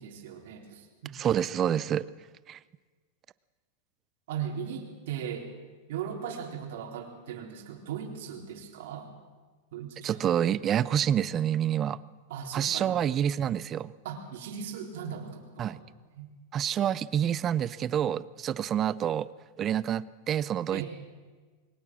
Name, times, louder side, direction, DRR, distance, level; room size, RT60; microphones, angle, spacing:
voice 1, 0.0-1.2 4.3-5.5 5.9-9.1 9.7-10.3 12.3-13.0 14.0-15.8 16.2-16.3 20.7-20.9, right 8 dB, 70° right, 3 dB, 3.8 m, -38 dB
voice 2, 1.1-2.1 2.5-2.6 10.0-12.0 12.5-13.9 15.6-15.8 16.5-19.3 19.6-20.9, right 10 dB, 25° right, 19 dB, 0.5 m, -28 dB
22.0 x 19.5 x 6.2 m, 1.4 s
supercardioid pair, 150°, 0 cm